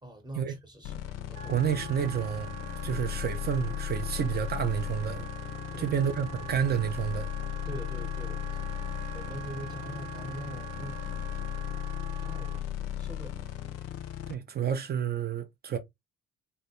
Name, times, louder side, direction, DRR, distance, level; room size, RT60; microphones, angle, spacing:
voice 1, 0.0-1.6 5.7-6.0 7.6-11.4 12.1-13.4, right 1 dB, 10° right, 0.9 m, -44 dB
sound 1, 0.8-14.3, left 11 dB, 45° left, 0.4 m, -36 dB
Wind instrument woodwind instrument, 1.3-12.7, right 9 dB, 85° right, 0.6 m, -44 dB
voice 2, 1.5-5.3 5.8-7.3 14.3-15.8, right 8 dB, 25° right, 0.4 m, -30 dB
2.1 x 2.1 x 2.8 m
figure-of-eight pair, 45°, 39 cm